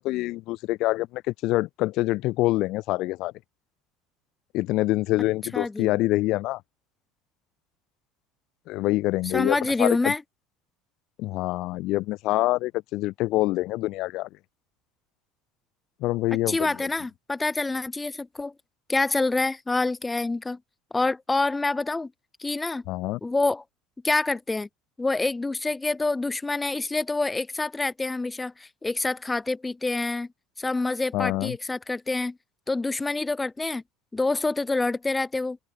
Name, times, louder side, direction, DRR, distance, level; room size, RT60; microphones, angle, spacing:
voice 1, 0.0-3.3 4.5-6.6 8.7-10.1 11.2-14.3 16.0-16.7 22.9-23.2 31.1-31.6, left 18 dB, 65° left, 0.5 m, -26 dB
voice 2, 5.5-5.9 9.3-10.2 16.5-18.5 18.9-20.6 20.9-22.1 22.4-22.8 23.2-23.6 24.0-24.7 25.0-30.3 30.6-32.4 32.7-33.8 34.1-35.6, left 3 dB, 15° left, 1.0 m, -26 dB
supercardioid pair, 100°, 0 cm